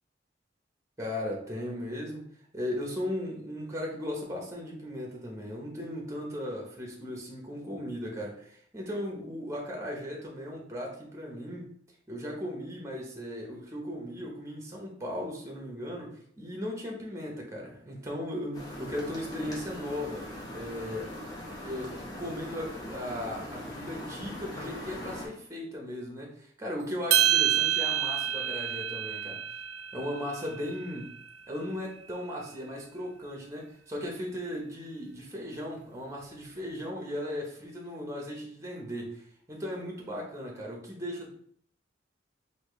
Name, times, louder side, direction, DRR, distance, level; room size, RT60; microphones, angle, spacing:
voice 1, 1.0-2.2 2.5-11.7 12.1-21.1 21.6-29.4 29.9-31.2 31.5-41.3, left 1 dB, 15° right, -1 dB, 0.8 m, -37 dB
sound 1, 18.5-25.3, left 1 dB, 20° left, 0.8 m, -41 dB
sound 2, 27.1-31.5, right 11 dB, 60° right, 0.4 m, -28 dB
4.1 x 2.7 x 3.1 m, 0.62 s
head